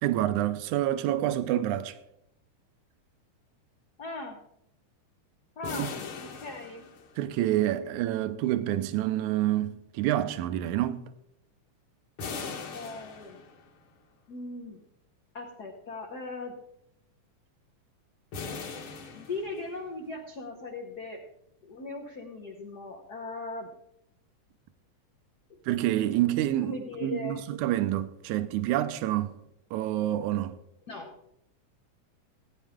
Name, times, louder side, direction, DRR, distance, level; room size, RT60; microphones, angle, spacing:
voice 1, 0.0-1.9 5.7-5.9 7.2-11.1 25.7-29.4 29.7-30.6, right 13 dB, 80° right, 2.1 m, -28 dB
voice 2, 4.0-4.4 5.6-6.9 12.4-13.4 14.3-14.8 15.3-16.6 19.1-21.2 21.6-23.7 25.5-25.6 26.6-27.4 30.9-31.1, left 2 dB, 75° left, 0.9 m, -39 dB
sound 1, 5.6-7.5 12.2-13.8 18.3-20.0, left 5 dB, 55° left, 1.7 m, -40 dB
17.0 x 9.5 x 3.6 m
omnidirectional pair, 3.5 m